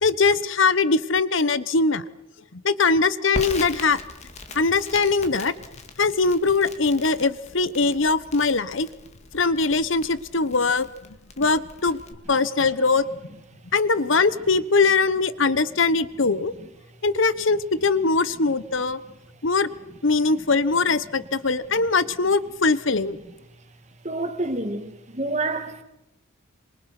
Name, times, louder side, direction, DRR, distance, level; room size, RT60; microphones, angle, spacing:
voice 1, 0.0-2.0 2.5-4.0 4.5-5.5 6.0-8.9 9.3-10.9 11.4-12.0 12.3-13.0 13.7-16.5 17.0-19.0 19.4-19.7 20.0-23.2, left 4 dB, 65° left, 1.1 m, -21 dB
Crackle, 3.3-12.1, left 2 dB, 35° left, 2.1 m, -40 dB
voice 2, 24.0-25.8, right 2 dB, 35° right, 2.3 m, -28 dB
26.5 x 25.5 x 6.1 m
head